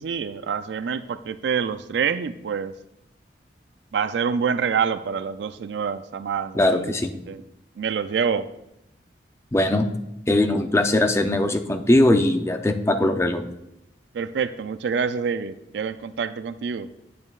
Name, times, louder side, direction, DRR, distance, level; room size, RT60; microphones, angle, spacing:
voice 1, 0.0-2.7 3.9-6.9 7.3-7.4 7.8-8.5 14.1-16.9, right 6 dB, 70° right, 13 dB, 0.4 m, -26 dB
voice 2, 6.5-7.1 9.5-9.9 10.3-13.5, left 1 dB, 15° left, 6 dB, 0.5 m, -20 dB
8.8 x 8.4 x 2.4 m, 0.84 s
head